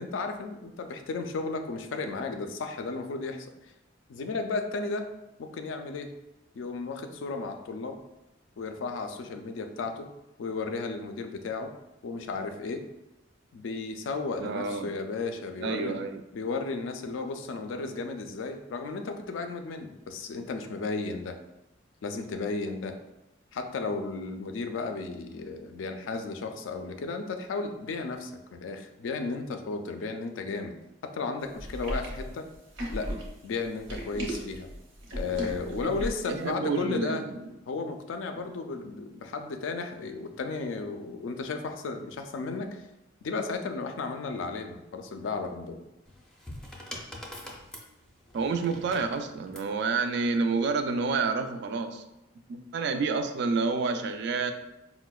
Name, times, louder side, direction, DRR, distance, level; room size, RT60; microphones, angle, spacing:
voice 1, 0.0-3.5 4.1-5.1 5.4-6.1 6.6-8.0 8.6-10.1 10.4-11.7 12.0-12.8 13.5-16.0 16.3-21.4 22.0-23.0 23.5-30.7 31.0-32.5 32.9-33.1 33.4-34.7 35.2-37.3 37.7-42.8 43.2-45.8, left 4 dB, 85° left, 6 dB, 0.4 m, -34 dB
voice 2, 14.4-14.9 15.6-16.2 35.8-35.9 36.3-37.5 38.4-38.5 48.3-52.0 52.5-54.5, right 4 dB, 65° right, 7 dB, 0.3 m, -29 dB
sound 1, 31.6-36.3, equal, 85° right, 0.8 m, -36 dB
sound 2, 46.0-49.7 50.8-51.2, left 1 dB, 5° left, 0.4 m, -44 dB
4.7 x 2.0 x 2.2 m, 0.92 s
head